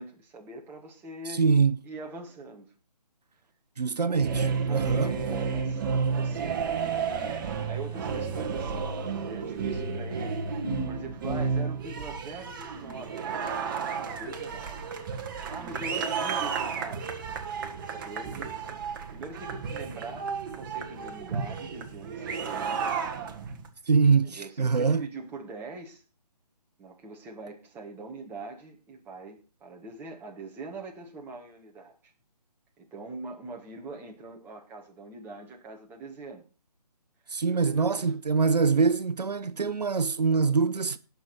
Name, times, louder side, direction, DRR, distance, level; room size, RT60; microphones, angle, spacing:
voice 1, 0.0-1.4 1.8-2.6 4.1-4.2 4.7-10.5 10.9-14.8 15.5-17.1 17.7-23.0 24.2-26.0 26.8-32.1 32.8-36.4 37.2-38.2, right 3 dB, 10° right, 1.8 m, -43 dB
voice 2, 1.3-1.8 3.8-5.1 23.9-25.0 37.3-41.0, right 5 dB, 75° right, 0.9 m, -24 dB
sound 1, 4.1-23.7, right 5 dB, 30° right, 1.6 m, -32 dB
18.5 x 6.9 x 4.4 m
figure-of-eight pair, 150°, 21 cm